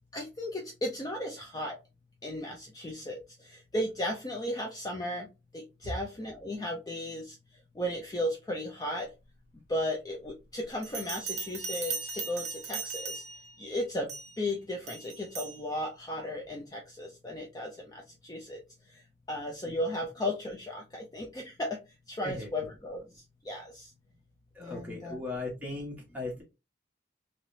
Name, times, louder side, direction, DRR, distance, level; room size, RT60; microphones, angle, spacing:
voice 1, 0.1-1.7 2.2-3.2 3.7-5.3 5.5-7.3 7.8-9.1 9.7-13.0 13.6-14.1 14.4-17.7 18.3-18.6 19.3-21.7 22.1-23.0 23.5-23.8 24.6-25.2, left 1 dB, 20° left, 1 dB, 0.4 m, -35 dB
Bell, 10.8-13.5 14.1-14.4 14.9-15.6, right 5 dB, 40° right, 0.7 m, -38 dB
voice 2, 24.6-26.4, left 2 dB, 10° right, -3 dB, 1.2 m, -38 dB
3.2 x 2.9 x 2.7 m, 0.27 s
head